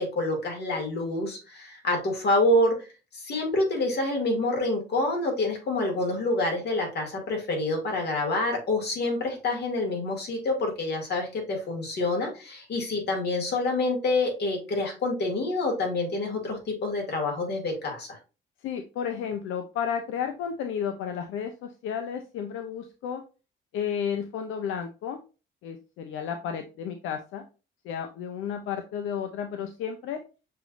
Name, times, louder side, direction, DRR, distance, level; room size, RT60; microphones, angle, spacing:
voice 1, 0.0-2.7 3.2-18.2, left 2 dB, 55° left, 1 dB, 2.3 m, -27 dB
voice 2, 18.6-23.2 23.7-25.2 25.6-27.4 27.8-30.2, left 8 dB, 90° left, 6 dB, 0.6 m, -32 dB
6.6 x 3.1 x 2.5 m, 0.31 s
cardioid pair, 90°, 20 cm